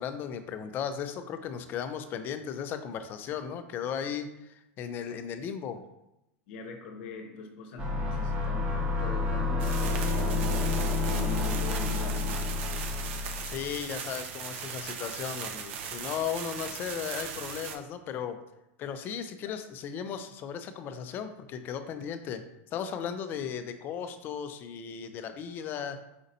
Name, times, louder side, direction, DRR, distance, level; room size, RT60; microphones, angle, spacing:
voice 1, 0.0-5.8 13.4-18.4 18.8-22.4 22.7-26.0, left 8 dB, 30° left, 9 dB, 0.4 m, -36 dB
voice 2, 6.5-12.4 19.4-19.6, left 2 dB, 55° left, 4 dB, 0.8 m, -42 dB
sound 1, 7.8-13.7, left 3 dB, 15° right, 0.8 m, -29 dB
sound 2, 9.6-17.8, right 7 dB, 60° right, 0.5 m, -38 dB
5.0 x 4.0 x 2.7 m, 0.88 s
supercardioid pair, 155°, 7 cm